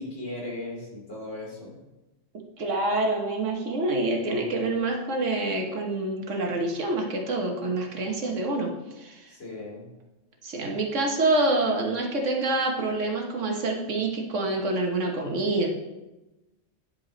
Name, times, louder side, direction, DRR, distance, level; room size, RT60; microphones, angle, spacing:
voice 1, 0.0-1.8 9.3-9.9, left 2 dB, 70° left, -5 dB, 3.2 m, -37 dB
voice 2, 2.6-8.7 9.0-9.3 10.4-15.7, right 2 dB, 70° right, 1 dB, 1.5 m, -26 dB
9.9 x 4.7 x 3.9 m, 1.0 s
omnidirectional pair, 1.3 m